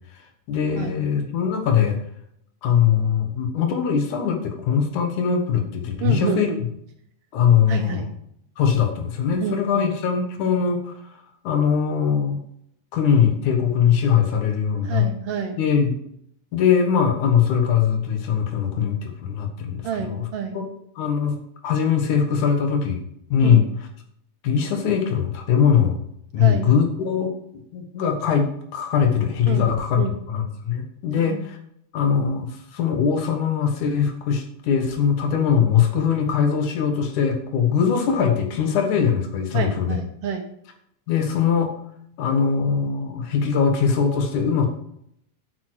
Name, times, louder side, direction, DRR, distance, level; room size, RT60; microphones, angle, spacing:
voice 1, 0.5-2.0 2.6-6.7 7.3-8.0 8.6-11.0 11.4-12.4 12.9-15.1 15.6-15.9 16.5-20.3 20.5-20.6 21.0-21.4 21.6-23.0 23.3-23.7 24.4-26.0 26.3-30.0 30.3-31.6 31.9-40.0 41.1-41.7 42.2-44.7, left 7 dB, 85° left, 4 dB, 2.9 m, -21 dB
voice 2, 6.0-6.6 7.7-8.1 9.4-9.9 14.8-15.6 19.8-20.6 23.4-23.6 26.4-26.7 29.5-29.7 30.0-30.1 31.2-31.5 39.5-40.5, right 7 dB, 65° right, 5 dB, 1.8 m, -28 dB
9.4 x 8.4 x 4.7 m, 0.73 s
omnidirectional pair, 3.4 m